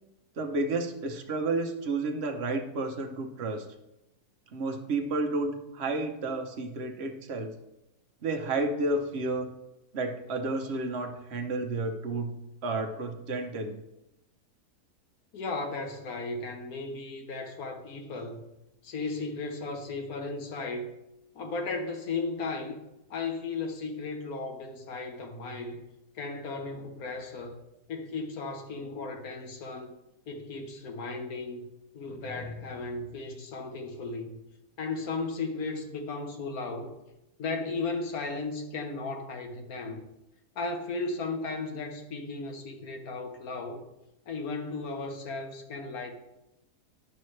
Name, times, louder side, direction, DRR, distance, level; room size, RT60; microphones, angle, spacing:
voice 1, 0.4-3.6 4.5-7.5 8.2-9.5 9.9-13.8, right 2 dB, 50° right, 4 dB, 0.9 m, -31 dB
voice 2, 15.3-18.4 18.8-20.9 21.3-22.8 23.1-25.8 26.1-27.6 27.9-29.9 30.3-31.7 31.9-34.4 34.8-36.9 37.4-40.0 40.5-43.8 44.3-46.1, left 3 dB, 65° left, 4 dB, 1.4 m, -35 dB
10.5 x 5.5 x 3.2 m, 0.92 s
omnidirectional pair, 1.7 m